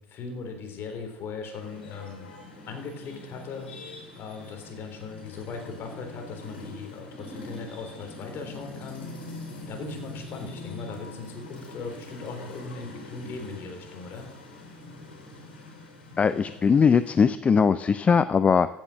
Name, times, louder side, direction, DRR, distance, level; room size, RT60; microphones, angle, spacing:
voice 1, 0.1-2.3 2.7-3.7 4.1-9.1 9.7-14.3, left 4 dB, 40° left, 5 dB, 3.5 m, -38 dB
sound 1, 1.6-17.3, left 2 dB, 70° left, 4.4 m, -44 dB
voice 2, 16.2-18.7, left 6 dB, 25° left, 14 dB, 0.4 m, -20 dB
15.5 x 7.2 x 7.5 m, 0.92 s
figure-of-eight pair, 65°, 6 cm